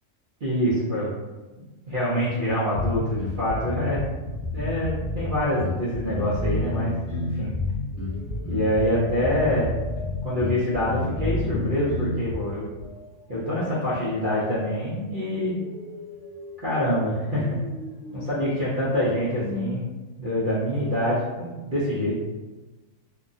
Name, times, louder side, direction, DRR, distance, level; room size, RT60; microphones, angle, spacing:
voice 1, 0.4-1.1 1.9-4.0 4.5-7.5 8.5-9.8 10.2-12.7 13.3-15.6 16.6-17.6 18.1-19.8 20.2-22.2, equal, 55° right, -10 dB, 0.6 m, -25 dB
sound 1, 2.7-12.3, left 2 dB, 25° left, 0.3 m, -29 dB
sound 2, 7.9-11.6 12.8-19.7, left 2 dB, 70° left, 0.7 m, -41 dB
2.9 x 2.3 x 2.5 m, 1.2 s
omnidirectional pair, 1.6 m